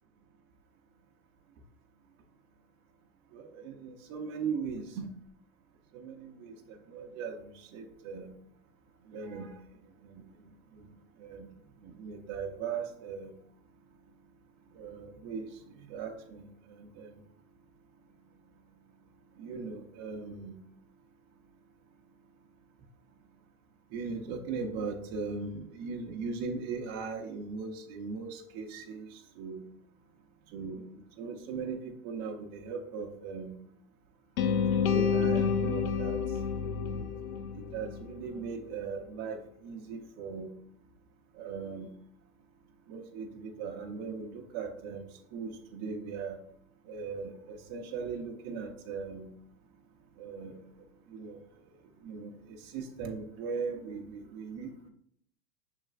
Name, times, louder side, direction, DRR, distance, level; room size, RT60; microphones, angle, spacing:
voice 1, 3.3-5.1 5.9-6.5 6.9-8.4 9.1-9.6 11.2-11.5 11.8-13.3 14.7-15.5 15.9-16.4 17.0-17.1 19.4-20.5 23.9-29.6 30.5-30.8 31.2-33.6 34.9-36.2 37.5-40.5 41.4-41.9 42.9-46.4 46.9-49.3 50.2-50.6 51.1-51.4 52.0-54.9, right 5 dB, 40° right, 2 dB, 0.6 m, -39 dB
sound 1, 34.4-38.4, left 6 dB, 90° left, 0.6 m, -29 dB
6.1 x 3.3 x 2.4 m, 0.69 s
hypercardioid pair, 115°, 41 cm